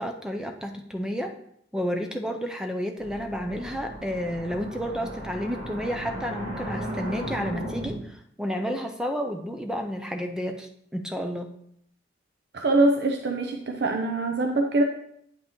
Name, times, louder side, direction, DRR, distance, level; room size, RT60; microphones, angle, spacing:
voice 1, 0.0-1.3 1.7-11.5, equal, 5° right, 4 dB, 0.5 m, -31 dB
sound 1, 3.0-7.9, equal, 85° right, 3.0 m, -36 dB
voice 2, 12.5-14.8, right 2 dB, 60° right, 3 dB, 0.5 m, -23 dB
8.9 x 5.5 x 3.0 m, 0.71 s
head